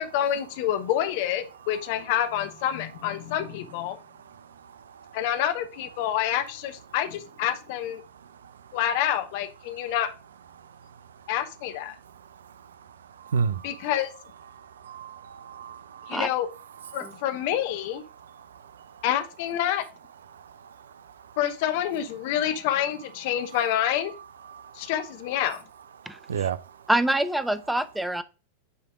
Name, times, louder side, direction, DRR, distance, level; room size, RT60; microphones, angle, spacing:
voice 1, 0.0-4.0 5.1-8.0 8.7-10.1 11.3-11.9 13.6-14.1 16.1-16.5 16.9-18.0 19.0-19.8 21.4-24.1 24.7-25.6, left 11 dB, 50° left, 0.9 m, -27 dB
voice 2, 3.9-5.2 8.2-8.5 10.6-10.9 12.1-13.9 14.5-16.3 18.2-19.0 20.3-21.4 23.5-23.8 24.5-24.9 26.0-26.8, right 6 dB, 65° right, 0.5 m, -36 dB
voice 3, 26.9-28.2, right 1 dB, 5° right, 0.5 m, -25 dB
9.4 x 3.3 x 3.7 m
figure-of-eight pair, 90°, 0 cm